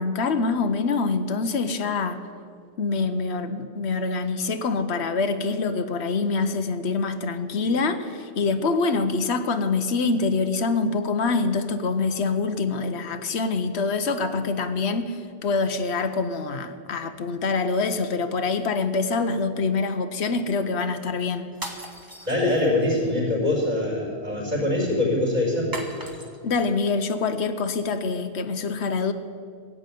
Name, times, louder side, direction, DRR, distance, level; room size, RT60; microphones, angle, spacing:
voice 1, 0.0-2.2 2.8-21.5 26.4-29.1, left 4 dB, 75° left, 9 dB, 1.1 m, -25 dB
sound 1, 21.5-23.0 25.7-26.6, right 1 dB, 20° right, 1.3 m, -38 dB
voice 2, 22.2-25.7, left 2 dB, 40° right, -3 dB, 4.8 m, -23 dB
16.0 x 8.5 x 9.2 m, 2.2 s
omnidirectional pair, 1.1 m